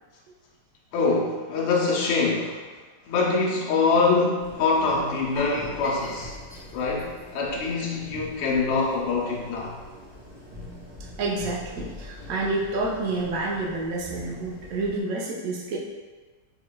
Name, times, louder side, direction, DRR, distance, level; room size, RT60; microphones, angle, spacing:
voice 1, 0.9-2.6 3.1-6.3 6.7-9.8, left 4 dB, 85° left, -3 dB, 1.6 m, -24 dB
sound 1, 4.4-15.0, left 1 dB, 30° right, 1.0 m, -44 dB
sound 2, 5.3-8.3 8.6-8.8 9.3-9.4, left 2 dB, 5° left, 0.5 m, -43 dB
voice 2, 11.2-15.8, right 2 dB, 70° right, -4 dB, 0.8 m, -29 dB
3.8 x 3.7 x 2.2 m, 1.3 s
omnidirectional pair, 2.4 m